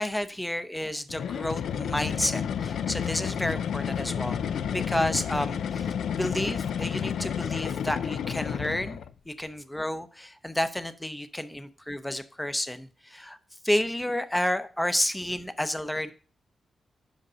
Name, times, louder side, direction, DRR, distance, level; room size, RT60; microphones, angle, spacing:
voice 1, 0.0-5.9 6.2-9.0 9.3-13.4 13.6-16.1, left 1 dB, 10° left, 11 dB, 0.7 m, -30 dB
sound 1, 1.1-9.1, left 8 dB, 85° left, 0.3 m, -31 dB
5.3 x 5.2 x 6.1 m, 0.38 s
cardioid pair, 100°, 0 cm